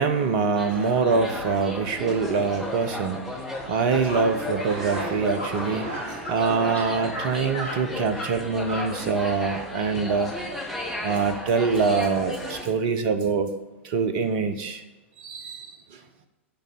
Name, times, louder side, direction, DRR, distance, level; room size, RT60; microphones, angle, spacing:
voice 1, 0.0-10.4 11.0-13.5 13.8-14.8 15.2-16.0, right 5 dB, 45° right, 9 dB, 0.9 m, -25 dB
Atmosphere Dimes Restaurant New York, 0.6-12.6, left 1 dB, ahead, 2.0 m, -34 dB
sound 1, 4.1-4.2 4.5-4.7 4.9-5.1 5.4-6.4 6.6-7.3 7.5-7.8 8.2-8.3 8.6-8.9, equal, 75° left, 2.3 m, -34 dB
10.5 x 5.2 x 7.6 m, 1.1 s
figure-of-eight pair, 95°, 7 cm